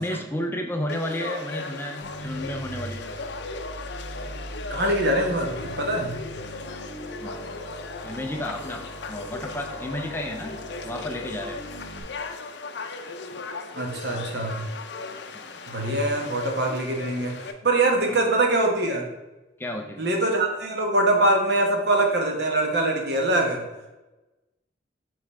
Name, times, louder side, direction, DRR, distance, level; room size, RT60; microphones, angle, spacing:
voice 1, 0.0-3.1 7.2-7.6 8.0-11.6 15.3-15.7 16.2-16.3 18.0-18.2 19.6-20.0, left 1 dB, 10° left, 3 dB, 0.4 m, -32 dB
Conversation / Crowd, 0.9-17.5, left 3 dB, 65° left, 0.5 m, -37 dB
sound 1, 2.0-12.0, right 1 dB, 5° right, 1.4 m, -40 dB
voice 2, 4.7-6.1 13.7-14.7 15.7-17.3 17.6-19.0 20.0-23.6, right 2 dB, 60° right, 2 dB, 1.1 m, -23 dB
5.4 x 3.8 x 4.7 m, 1.1 s
head